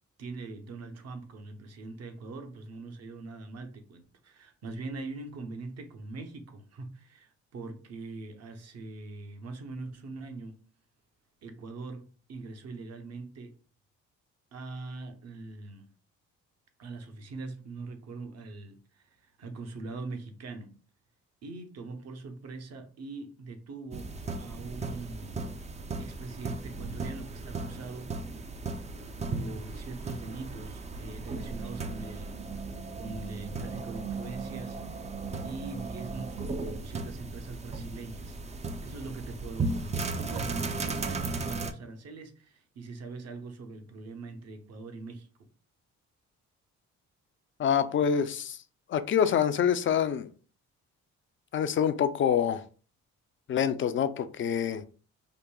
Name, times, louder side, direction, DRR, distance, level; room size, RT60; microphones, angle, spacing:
voice 1, 0.2-10.6 11.4-13.6 14.5-15.9 16.8-20.7 21.4-24.1 24.4-25.4 26.0-28.2 29.2-32.4 32.9-35.1 35.4-38.4 38.8-45.3, right 3 dB, 55° right, 0.8 m, -42 dB
sound 1, 23.9-41.7, right 3 dB, 25° right, 0.4 m, -36 dB
voice 2, 47.6-48.6 48.9-50.3 51.5-52.6 53.5-54.8, left 8 dB, 40° left, 0.4 m, -26 dB
5.0 x 2.6 x 2.2 m
cardioid pair, 90°, 30 cm